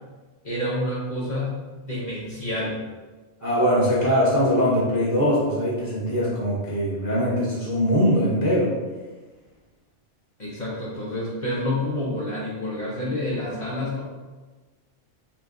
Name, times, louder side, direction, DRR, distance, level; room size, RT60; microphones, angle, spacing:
voice 1, 0.4-1.5 1.9-2.8 10.4-14.0, left 1 dB, 45° left, -5 dB, 0.8 m, -28 dB
voice 2, 3.4-8.7, equal, 25° right, -7 dB, 0.5 m, -22 dB
3.3 x 3.0 x 2.5 m, 1.3 s
omnidirectional pair, 1.2 m